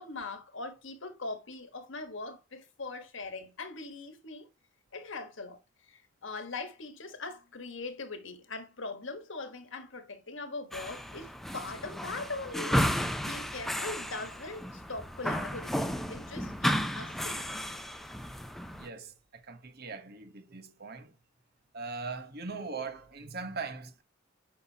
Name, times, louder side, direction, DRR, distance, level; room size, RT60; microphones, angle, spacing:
voice 1, 0.0-4.5 4.9-5.6 5.9-17.4, left 3 dB, 60° left, 1.4 m, -41 dB
sound 1, 10.7-18.9, equal, ahead, 0.6 m, -33 dB
voice 2, 18.8-21.1 21.7-24.0, right 4 dB, 45° right, 1.0 m, -40 dB
8.8 x 5.7 x 2.8 m
head